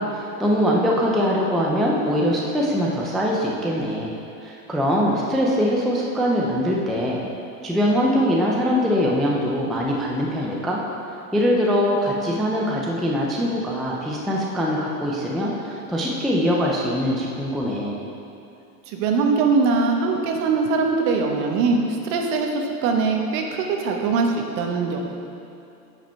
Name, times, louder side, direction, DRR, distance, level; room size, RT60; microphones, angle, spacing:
voice 1, 0.0-4.1 4.4-7.2 7.6-10.8 11.3-18.0, equal, ahead, -3 dB, 0.3 m, -22 dB
voice 2, 18.9-25.0, right 4 dB, 60° right, 2 dB, 1.2 m, -22 dB
8.9 x 5.2 x 4.3 m, 2.7 s
supercardioid pair, 120°, 45 cm